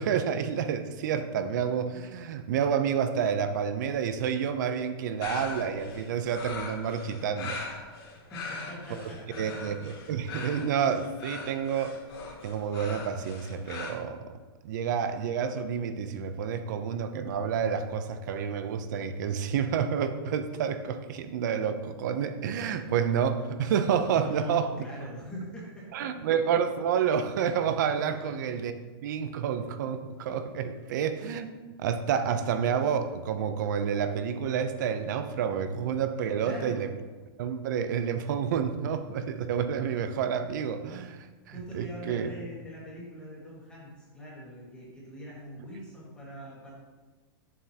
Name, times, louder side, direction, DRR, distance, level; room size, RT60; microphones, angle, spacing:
voice 1, 0.0-7.6 9.4-11.9 12.4-14.4 14.6-24.7 25.9-28.7 29.0-31.5 31.8-36.9 37.4-41.3 41.7-42.3, right 7 dB, 45° right, 10 dB, 0.6 m, -29 dB
sound 1, 5.2-13.9, left 4 dB, 70° left, 2.2 m, -41 dB
voice 2, 8.3-9.6 24.2-26.1 28.1-28.4 36.4-36.8 41.5-46.7, equal, 5° left, -6 dB, 1.5 m, -42 dB
8.8 x 7.3 x 2.8 m, 1.3 s
supercardioid pair, 175°, 13 cm